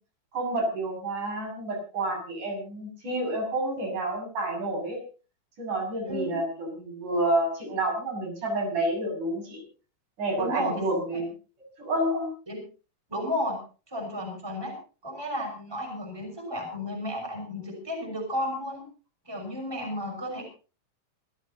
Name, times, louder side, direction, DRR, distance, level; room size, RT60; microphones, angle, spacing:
voice 1, 0.3-5.0 5.6-9.6 10.2-11.3 11.8-12.3, right 1 dB, 60° right, 2 dB, 8.7 m, -29 dB
voice 2, 10.4-10.8 12.5-12.6 13.1-13.6 13.9-14.8 15.0-18.8 19.3-20.4, left 1 dB, 5° right, 3 dB, 5.8 m, -32 dB
26.5 x 14.5 x 2.9 m, 0.36 s
omnidirectional pair, 4.1 m